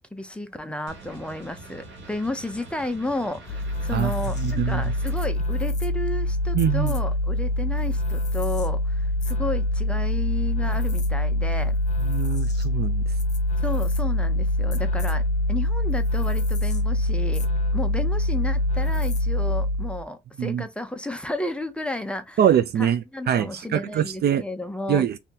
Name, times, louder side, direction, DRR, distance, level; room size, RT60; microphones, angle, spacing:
voice 1, 0.1-11.8 13.6-15.2 15.5-17.5 17.7-22.4 22.8-25.0, left 1 dB, 5° left, 0.7 m, -32 dB
sound 1, 0.9-5.3, right 3 dB, 80° right, 1.2 m, -44 dB
sound 2, 3.5-20.0, left 1 dB, 35° left, 1.0 m, -24 dB
voice 2, 4.4-4.8 6.5-6.9 12.0-13.0 20.4-20.6 22.4-24.4 24.9-25.2, right 9 dB, 55° right, 0.4 m, -23 dB
2.8 x 2.7 x 3.6 m
cardioid pair, 90°, 20 cm